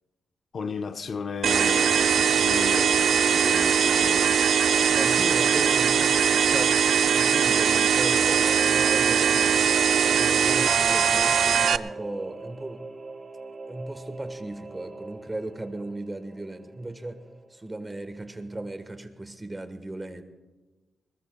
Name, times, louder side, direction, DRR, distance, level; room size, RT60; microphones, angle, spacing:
voice 1, 0.5-4.5, left 5 dB, 55° left, 0.7 m, -35 dB
Bird vocalization bird call bird song, 1.3-9.2, left 4 dB, 90° left, 6.1 m, -52 dB
sound 1, 1.4-11.8, right 7 dB, 75° right, 0.4 m, -21 dB
voice 2, 4.9-6.9 7.1-9.8 10.0-12.9 13.7-20.2, right 2 dB, 20° right, 1.3 m, -36 dB
Singing / Musical instrument, 8.2-18.2 18.5-18.6, right 2 dB, 40° right, 2.0 m, -41 dB
22.0 x 21.0 x 2.3 m
cardioid pair, 95°, 0 cm